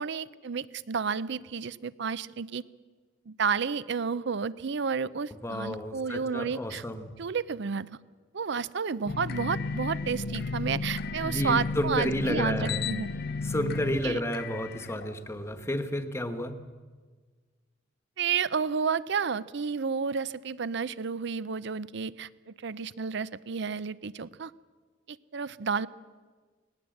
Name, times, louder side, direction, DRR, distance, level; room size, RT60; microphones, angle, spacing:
voice 1, 0.0-2.6 3.3-6.8 7.2-7.9 8.3-13.1 14.0-14.2 18.2-24.5 25.1-25.9, right 6 dB, 60° right, 18 dB, 0.5 m, -31 dB
voice 2, 5.4-7.2 11.2-12.9 13.4-16.6, left 1 dB, 15° left, 8 dB, 1.2 m, -31 dB
sound 1, 9.1-15.6, left 4 dB, 55° left, 0.6 m, -34 dB
19.0 x 18.5 x 7.8 m, 1.5 s
head